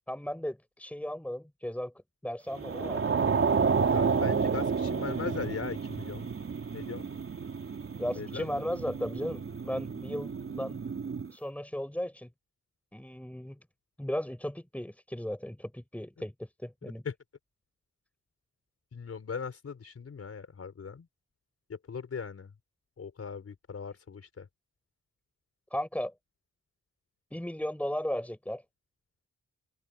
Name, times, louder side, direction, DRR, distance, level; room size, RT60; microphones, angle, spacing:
voice 1, 0.1-1.9 2.2-3.0 8.0-10.8 11.3-12.3 12.9-13.6 14.0-17.0 25.7-26.1 27.3-28.6, equal, 5° left, 5.1 m, -36 dB
sound 1, 2.6-11.3, right 5 dB, 50° right, 3.1 m, -31 dB
voice 2, 3.9-6.3 6.7-7.1 8.1-8.5 16.8-17.1 18.9-21.1 21.7-22.5 23.0-24.5, left 5 dB, 55° left, 4.8 m, -39 dB
open air
wide cardioid pair, 115°, 29 cm